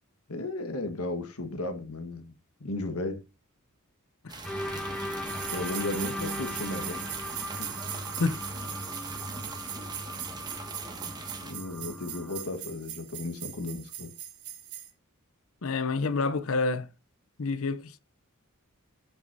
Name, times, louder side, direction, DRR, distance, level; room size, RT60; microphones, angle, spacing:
voice 1, 0.3-2.3 2.6-3.2 5.5-7.0 7.6-7.7 11.4-14.1, left 2 dB, 85° left, 1.5 m, -35 dB
sound 1, 4.3-11.5, right 3 dB, 20° right, 1.5 m, -43 dB
sound 2, 4.4-12.4, equal, 5° left, 1.1 m, -38 dB
sound 3, 5.3-14.9, right 11 dB, 80° right, 2.1 m, -40 dB
voice 2, 15.6-16.9 17.4-18.0, left 3 dB, 65° left, 0.7 m, -28 dB
17.0 x 6.3 x 2.7 m
head